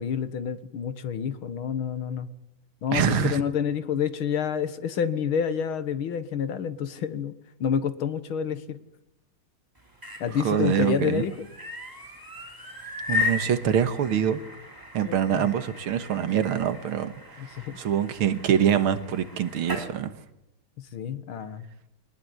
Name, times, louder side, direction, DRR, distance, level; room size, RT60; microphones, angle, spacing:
voice 1, 0.0-2.3 2.8-7.3 7.6-8.8 10.2-11.5 15.0-15.5 17.4-17.8 20.8-21.7, left 8 dB, 80° left, 12 dB, 2.2 m, -28 dB
voice 2, 2.9-3.4 10.3-11.2 13.1-14.4 14.9-17.5 17.8-20.1, right 9 dB, 85° right, 11 dB, 2.2 m, -25 dB
sound 1, 9.8-19.9, left 3 dB, 10° right, 3.7 m, -36 dB
23.5 x 19.5 x 9.6 m, 0.88 s
omnidirectional pair, 2.3 m